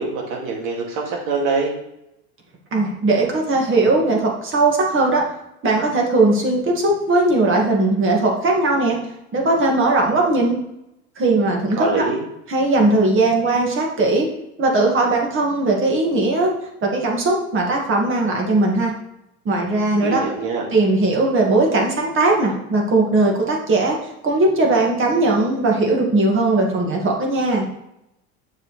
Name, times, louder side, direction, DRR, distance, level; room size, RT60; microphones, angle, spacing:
voice 1, 0.0-1.7 11.8-12.2 20.0-20.7, right 3 dB, 65° right, 0 dB, 2.3 m, -24 dB
voice 2, 2.7-5.2 5.6-9.0 9.3-10.6 11.2-12.1 12.5-14.3 14.6-16.5 16.8-18.9 19.5-20.2 20.7-24.0 24.2-27.7, right 2 dB, 35° right, 0 dB, 1.9 m, -18 dB
6.7 x 5.9 x 3.2 m, 0.83 s
supercardioid pair, 100°, 36 cm